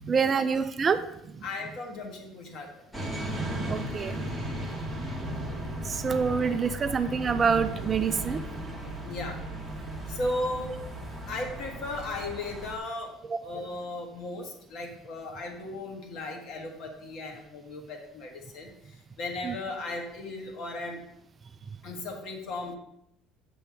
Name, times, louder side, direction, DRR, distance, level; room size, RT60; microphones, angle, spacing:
voice 1, 0.0-1.1 1.3-1.5 3.2-4.2 5.8-8.4 13.3-13.4 19.4-19.6, right 6 dB, 25° right, 9 dB, 0.3 m, -27 dB
voice 2, 1.4-2.8 8.7-9.4 10.1-10.8 11.2-13.1 13.4-21.0 21.8-22.8, left 2 dB, 50° left, 2 dB, 1.5 m, -36 dB
sound 1, 2.9-12.8, right 1 dB, ahead, 1.2 m, -36 dB
8.0 x 6.9 x 3.4 m, 0.77 s
cardioid pair, 155°, 0 cm